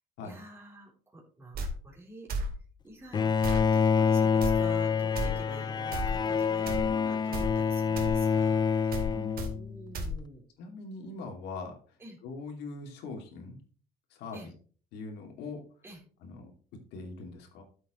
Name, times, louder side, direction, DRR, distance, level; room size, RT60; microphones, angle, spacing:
voice 1, 0.2-2.3 2.8-9.1 9.5-10.4 12.0-12.2 14.3-14.5 15.8-16.0, right 1 dB, 15° right, -3 dB, 3.7 m, -48 dB
sound 1, 1.5-1.7 2.3-2.5 3.4-3.7 4.4-4.5 5.1-5.3 5.9-6.1 6.7-6.9 7.3-7.5 8.0-8.1 8.9-9.1 9.4-9.5 9.9-10.1, right 1 dB, 65° right, 2.5 m, -32 dB
Bowed string instrument, 3.1-9.9, left 6 dB, 25° left, 0.4 m, -27 dB
voice 2, 10.6-11.7 12.2-13.6 14.1-14.4 14.9-15.6 16.2-16.5 16.9-17.6, left 3 dB, 85° left, 3 dB, 2.6 m, -41 dB
13.0 x 7.9 x 3.1 m, 0.43 s
cardioid pair, 110°, 17 cm